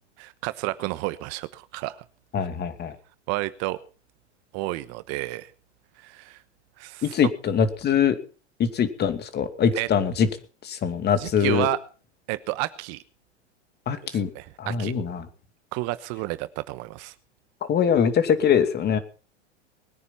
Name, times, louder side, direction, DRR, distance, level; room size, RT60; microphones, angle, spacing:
voice 1, 0.2-2.0 2.4-2.5 3.3-3.8 4.5-5.5 6.0-6.4 6.8-7.1 9.7-9.9 11.2-11.8 12.3-13.0 14.0-14.9 15.7-17.1, right 19 dB, 45° right, 14 dB, 1.1 m, -31 dB
voice 2, 2.3-3.0 7.0-8.2 8.6-10.3 10.6-11.7 13.9-14.3 14.6-15.3 17.7-19.0, left 7 dB, 30° left, 9 dB, 2.5 m, -23 dB
21.0 x 9.8 x 5.7 m, 0.38 s
hypercardioid pair, 110°, 35 cm